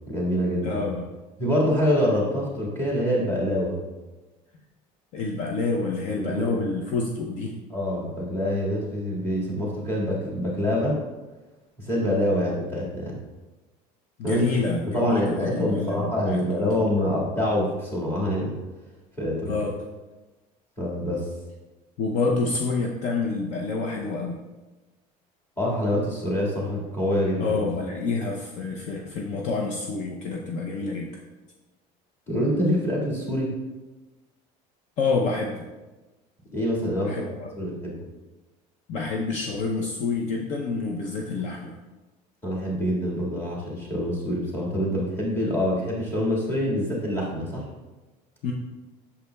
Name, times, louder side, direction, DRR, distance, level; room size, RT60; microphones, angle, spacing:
voice 1, 0.1-0.8 1.4-3.8 6.2-6.6 7.7-11.0 11.8-13.2 14.2-14.4 14.9-18.5 19.2-19.5 20.8-21.3 25.6-27.6 32.3-33.5 36.5-37.1 37.6-37.9 42.4-47.7, equal, 15° left, -5 dB, 1.9 m, -25 dB
voice 2, 0.6-1.1 5.1-7.6 14.2-16.6 19.5-19.7 22.0-24.4 27.4-31.1 35.0-35.7 37.0-37.5 38.9-41.8 48.4-48.5, left 4 dB, 50° left, 1 dB, 0.6 m, -28 dB
8.2 x 6.9 x 2.3 m, 1.2 s
cardioid pair, 165°, 16 cm